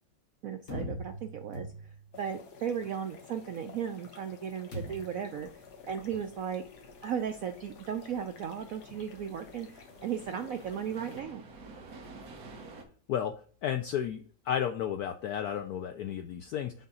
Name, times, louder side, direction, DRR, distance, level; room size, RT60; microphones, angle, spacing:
voice 1, 0.4-1.7 2.1-5.5 5.9-6.6 7.0-11.4, right 8 dB, 85° right, 6 dB, 0.7 m, -36 dB
sound 1, 0.7-2.2 4.7-5.3, equal, 40° left, 1.8 m, -40 dB
sound 2, 2.1-11.2, left 5 dB, 60° left, 1.6 m, -52 dB
sound 3, 5.5-12.8, right 3 dB, 55° right, 1.5 m, -52 dB
voice 2, 13.6-16.7, left 9 dB, 85° left, 7 dB, 0.8 m, -32 dB
5.8 x 3.6 x 5.4 m, 0.44 s
omnidirectional pair, 2.2 m